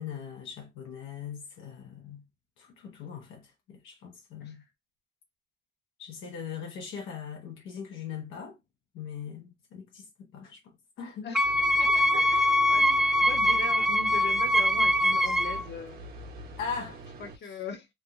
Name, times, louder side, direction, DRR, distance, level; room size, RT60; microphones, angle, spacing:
voice 1, 0.0-2.2 2.6-4.6 6.0-8.6 8.9-11.3 12.1-12.3 12.6-13.0 16.6-17.0, left 7 dB, 85° left, 0.9 m, -40 dB
voice 2, 11.2-11.5 11.8-12.9 13.2-16.1 17.2-17.9, left 5 dB, 60° left, 1.1 m, -40 dB
Wind instrument woodwind instrument, 11.3-15.6, left 1 dB, 5° right, 0.3 m, -23 dB
sound 1, 11.4-17.4, equal, 50° right, 1.2 m, -44 dB
3.4 x 2.3 x 2.6 m
cardioid pair, 90°, 20 cm